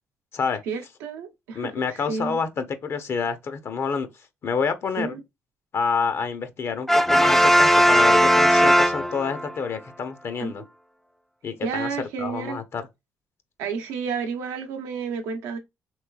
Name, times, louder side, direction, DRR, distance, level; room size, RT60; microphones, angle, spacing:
voice 1, 0.7-2.4 5.0-5.2 10.4-10.5 11.6-12.6 13.6-15.6, right 5 dB, 90° right, 0.7 m, -31 dB
voice 2, 1.5-4.1 4.4-5.2 5.7-10.6 11.4-11.9 12.2-12.8, left 5 dB, 55° left, 0.6 m, -28 dB
Brass instrument, 6.9-9.5, equal, 5° left, 0.3 m, -17 dB
3.1 x 3.1 x 2.3 m
supercardioid pair, 70°, 5 cm